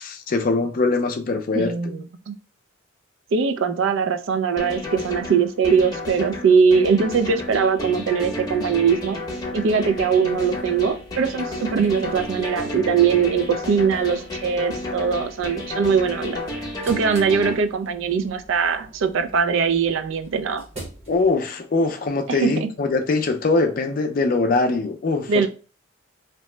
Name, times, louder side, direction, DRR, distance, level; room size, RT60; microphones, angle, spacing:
voice 1, 0.0-1.9 21.1-25.5, left 3 dB, 45° left, 0.4 m, -22 dB
voice 2, 1.5-2.4 3.3-9.2 9.5-16.4 16.8-20.6 22.3-22.7 25.3-25.5, right 6 dB, 75° right, 0.4 m, -21 dB
sound 1, 4.6-17.5, left 1 dB, 20° left, 0.7 m, -32 dB
sound 2, 10.3-21.3, right 2 dB, 35° right, 0.8 m, -45 dB
2.9 x 2.0 x 3.1 m
head